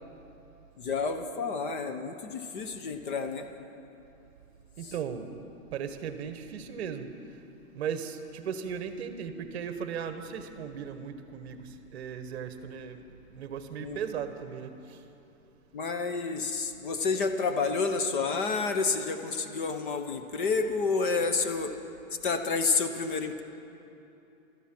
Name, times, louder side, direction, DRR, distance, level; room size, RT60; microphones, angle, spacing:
voice 1, 0.8-3.5 4.8-4.9 13.8-14.0 15.7-21.7 22.2-23.4, left 4 dB, 35° left, 7 dB, 0.8 m, -29 dB
voice 2, 4.8-5.4 5.7-7.1 7.7-13.0 13.3-15.0, right 7 dB, 45° right, 9 dB, 1.1 m, -37 dB
17.5 x 13.0 x 6.0 m, 2.9 s
hypercardioid pair, 165°, 43 cm